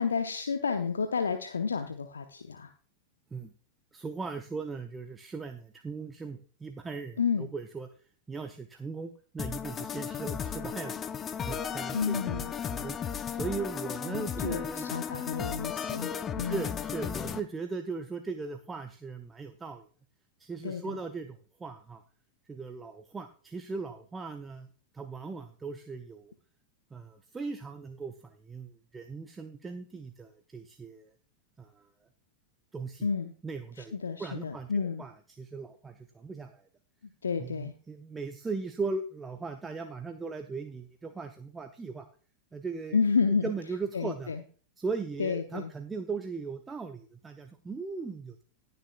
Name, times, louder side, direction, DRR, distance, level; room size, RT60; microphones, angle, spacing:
voice 1, 0.0-2.7 7.2-7.5 11.9-12.5 14.1-16.6 20.6-21.0 33.0-33.3 33.8-35.0 37.2-37.7 42.9-43.5 43.9-44.4 45.2-45.7, left 5 dB, 70° left, 8 dB, 0.7 m, -30 dB
voice 2, 3.9-7.9 8.3-11.0 11.5-13.0 13.3-14.9 16.4-19.9 20.4-22.0 22.5-24.7 24.9-26.3 26.9-31.1 31.6-31.9 32.7-33.1 33.4-33.9 34.2-35.1 35.4-36.6 37.4-42.1 42.5-43.0 43.4-44.3 44.8-48.4, right 4 dB, 15° right, 7 dB, 0.8 m, -38 dB
sound 1, 9.4-17.4, left 7 dB, 25° left, 0.7 m, -35 dB
18.5 x 6.8 x 2.4 m, 0.42 s
figure-of-eight pair, 90°, 0 cm